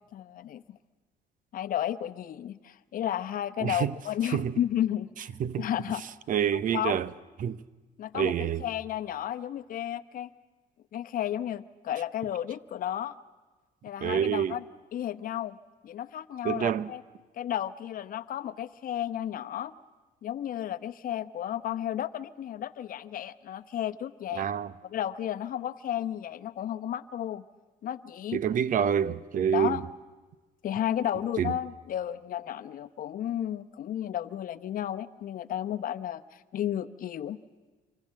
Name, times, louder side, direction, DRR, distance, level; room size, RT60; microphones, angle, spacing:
voice 1, 0.1-0.8 1.5-5.1 5.6-6.0 6.5-7.0 8.0-10.3 10.9-13.1 13.8-14.6 14.9-15.6 15.8-17.0 17.4-19.7 20.2-24.5 24.8-27.4 27.8-28.4 29.5-29.8 30.6-37.4, left 11 dB, 55° left, 0.9 m, -33 dB
voice 2, 3.6-3.9 4.3-4.5 5.4-5.7 6.3-7.1 7.4-7.6 8.1-8.6 14.0-14.6 16.4-16.9 24.4-24.7 28.3-29.8 31.4-31.5, right 8 dB, 55° right, 0.8 m, -27 dB
26.0 x 24.5 x 7.6 m
cardioid pair, 110°, 17 cm